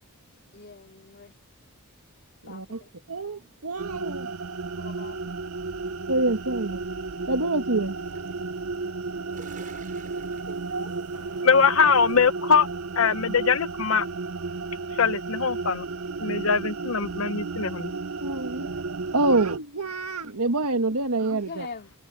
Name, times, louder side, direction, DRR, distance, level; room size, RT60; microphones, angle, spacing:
voice 1, 0.5-1.3 2.4-2.9 4.7-5.2 21.5-21.9, left 4 dB, 50° left, 2.9 m, -42 dB
voice 2, 2.4-2.8 3.1-4.3 6.1-6.8 7.3-8.0 10.5-10.9 18.2-18.7 19.1-21.7, right 2 dB, 85° right, 1.7 m, -26 dB
sound 1, 3.8-19.6, right 3 dB, 70° right, 0.7 m, -33 dB
sound 2, 5.9-12.3, right 4 dB, 40° right, 7.8 m, -54 dB
voice 3, 11.4-12.7 12.9-14.1 14.9-15.9 16.2-17.9 18.6-18.7, left 5 dB, 65° left, 1.0 m, -22 dB
head